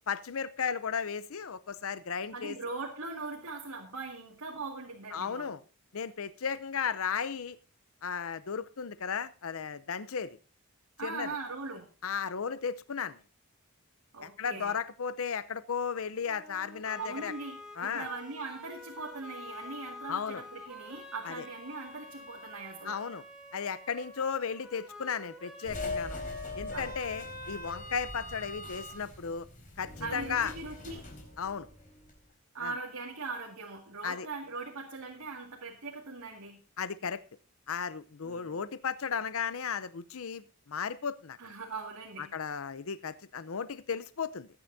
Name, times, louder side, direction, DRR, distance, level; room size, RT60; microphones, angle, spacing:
voice 1, 0.1-2.6 5.1-5.6 5.9-7.6 8.0-10.4 11.0-11.4 12.0-13.2 14.2-17.3 17.8-18.1 20.1-20.4 21.2-21.4 22.8-23.2 23.5-26.2 26.5-29.5 29.8-30.5 31.4-31.7 32.6-32.7 34.0-34.3 36.8-37.2 37.7-41.4 42.2-44.5, left 6 dB, 70° left, 14 dB, 0.6 m, -35 dB
voice 2, 2.3-5.6 11.0-11.9 14.1-14.7 17.0-23.0 26.5-26.9 30.0-31.1 32.5-36.6 38.2-38.6 41.4-42.3, right 3 dB, 90° right, -1 dB, 2.2 m, -40 dB
sound 1, 16.3-27.2, left 1 dB, 5° right, 2.1 m, -48 dB
sound 2, 25.6-32.2, left 2 dB, 35° left, 4.1 m, -41 dB
19.0 x 9.8 x 2.7 m, 0.33 s
head